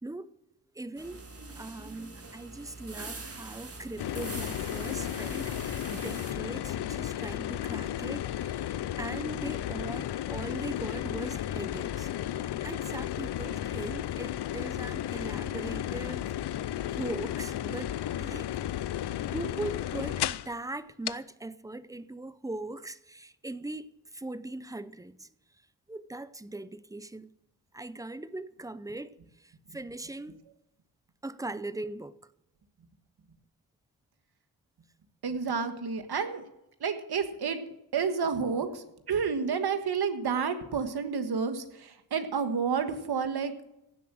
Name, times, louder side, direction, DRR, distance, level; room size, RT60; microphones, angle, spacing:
voice 1, 0.0-0.3 0.7-1.3 1.6-16.3 16.9-18.5 19.3-25.3 25.9-27.3 27.7-30.4 31.2-32.2, right 2 dB, 10° right, 0.5 m, -40 dB
sound 1, 1.0-6.3, right 3 dB, 35° right, 1.7 m, -43 dB
sound 2, 4.0-20.5 21.1-21.2, left 12 dB, 75° left, 0.5 m, -34 dB
voice 2, 35.2-36.5 36.8-37.6 37.9-43.5, right 6 dB, 70° right, 1.5 m, -30 dB
16.5 x 7.5 x 6.2 m
wide cardioid pair, 110°, 41 cm